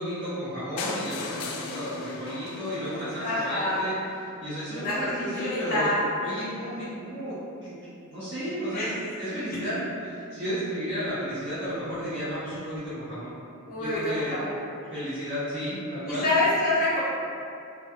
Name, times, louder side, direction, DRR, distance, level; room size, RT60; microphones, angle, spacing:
voice 1, 0.0-3.9 4.4-5.9 6.2-7.7 8.1-9.7 10.3-13.3 13.8-14.4 14.9-16.3, equal, 50° right, -13 dB, 0.6 m, -33 dB
sound 1, 0.8-4.7 5.3-5.4 5.6-5.7 6.0-6.1 6.3-6.4, left 3 dB, 90° left, 0.3 m, -38 dB
voice 2, 3.2-3.8 4.7-6.0 8.7-8.9 13.7-14.6 16.0-17.0, left 2 dB, 40° left, -9 dB, 0.7 m, -26 dB
2.2 x 2.2 x 2.8 m, 2.5 s
head